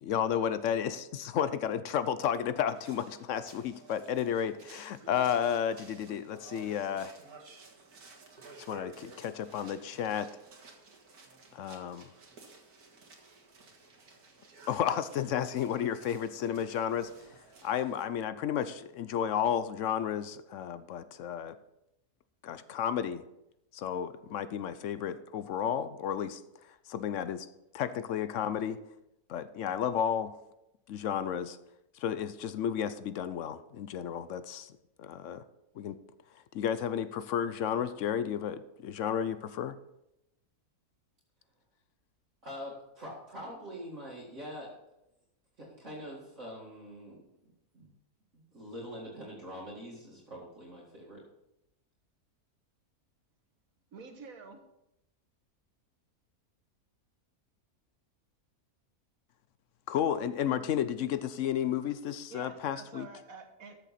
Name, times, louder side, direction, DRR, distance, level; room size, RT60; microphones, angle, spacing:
voice 1, 0.0-7.2 8.7-10.3 11.5-12.1 14.7-17.1 17.6-21.5 22.4-23.2 23.7-26.4 26.9-27.5 27.7-28.8 29.3-30.3 30.9-31.6 31.9-34.7 35.0-35.4 35.8-36.0 36.5-39.8 59.9-63.1, left 9 dB, 65° left, 13 dB, 0.9 m, -32 dB
sound 1, 2.7-18.0, right 3 dB, 90° right, 2.1 m, -54 dB
voice 2, 42.4-44.8 45.6-47.9 48.3-51.2, equal, 55° right, -5 dB, 2.3 m, -44 dB
voice 3, 53.9-54.6 62.3-63.8, right 4 dB, 70° right, 5 dB, 1.7 m, -48 dB
13.5 x 6.7 x 4.2 m, 0.86 s
omnidirectional pair, 1.6 m